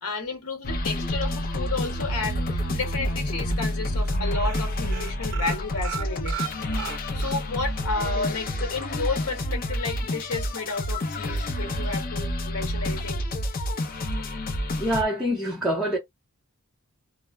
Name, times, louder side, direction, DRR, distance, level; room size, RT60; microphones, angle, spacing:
voice 1, 0.0-6.4 7.1-13.2, left 3 dB, 85° left, 1.0 m, -32 dB
sound 1, 0.6-15.0, left 1 dB, 40° left, 0.5 m, -28 dB
sound 2, 2.6-3.2 3.5-3.7 4.0-4.2 4.4-7.4 7.8-7.9 8.2-8.3, right 11 dB, 55° right, 0.3 m, -36 dB
voice 2, 14.8-16.0, equal, ahead, 0.6 m, -25 dB
2.1 x 2.0 x 3.3 m
head